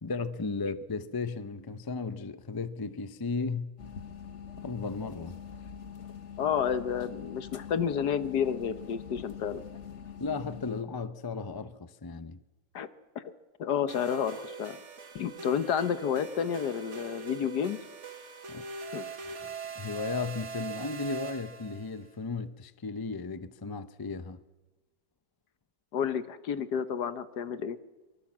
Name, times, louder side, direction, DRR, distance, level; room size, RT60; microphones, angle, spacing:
voice 1, 0.0-3.7 4.6-5.4 10.2-12.4 18.5-18.6 19.4-24.4, left 4 dB, 25° left, 0.5 m, -35 dB
sound 1, 3.8-10.8, left 7 dB, 50° left, 1.3 m, -44 dB
voice 2, 6.4-9.6 12.7-12.9 13.1-13.2 13.6-14.8 15.1-17.8 18.9-19.1 25.9-27.8, left 8 dB, 80° left, 1.7 m, -30 dB
sound 2, 13.9-22.0, right 4 dB, 45° right, 1.8 m, -42 dB
24.0 x 23.5 x 7.4 m
omnidirectional pair, 1.7 m